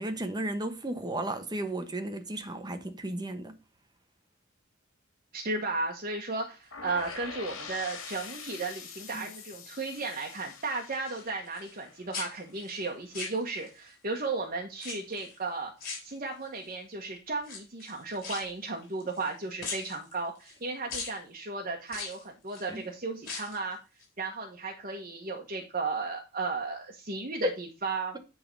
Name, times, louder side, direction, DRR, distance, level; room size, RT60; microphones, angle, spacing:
voice 1, 0.0-3.5 9.1-9.3 22.7-22.8 27.4-27.5, right 1 dB, 20° right, 1.1 m, -34 dB
voice 2, 5.3-15.7 16.0-23.8 24.2-28.2, right 3 dB, 45° right, 1.3 m, -35 dB
sound 1, 6.7-12.6, left 5 dB, 85° left, 2.0 m, -45 dB
sound 2, 6.9-7.8 8.3-8.7 9.0-10.1 10.3-11.9 12.1-13.9 14.8-15.4 15.8-16.7 17.4-19.3 19.6-20.6 20.9-21.2 21.9-22.7 23.1-23.7 24.0-24.1, left 4 dB, 50° left, 4.8 m, -41 dB
10.0 x 3.9 x 5.4 m
head